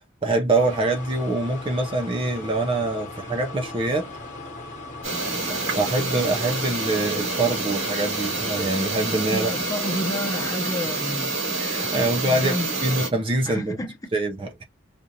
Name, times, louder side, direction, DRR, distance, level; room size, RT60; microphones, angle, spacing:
voice 1, 0.2-4.1 5.7-9.5 11.6-12.6 12.8-13.8 14.1-14.6, right 2 dB, 25° right, 0.5 m, -24 dB
sound 1, 0.6-11.8, left 2 dB, 40° left, 1.1 m, -39 dB
sound 2, 5.0-13.1, right 3 dB, 90° right, 2.8 m, -28 dB
voice 2, 9.3-11.4 12.3-13.0 13.5-13.9, left 1 dB, 15° left, 0.7 m, -30 dB
5.0 x 2.5 x 2.7 m
head